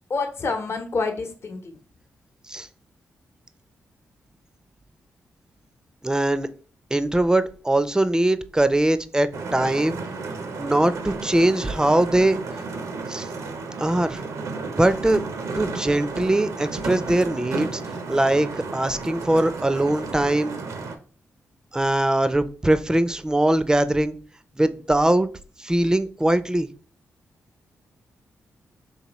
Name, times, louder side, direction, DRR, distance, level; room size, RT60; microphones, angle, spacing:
voice 1, 0.1-1.7, left 3 dB, 50° left, 4 dB, 0.9 m, -27 dB
voice 2, 6.0-6.5 6.9-10.0 10.6-12.4 13.1-13.3 13.8-14.2 14.7-15.2 15.6-17.8 18.1-20.6 21.7-24.1 24.6-25.3 25.6-26.7, right 1 dB, 15° right, 13 dB, 0.4 m, -21 dB
sound 1, 9.3-21.0, right 4 dB, 80° right, 0.7 m, -33 dB
4.3 x 3.2 x 3.0 m, 0.39 s
cardioid pair, 60°, 5 cm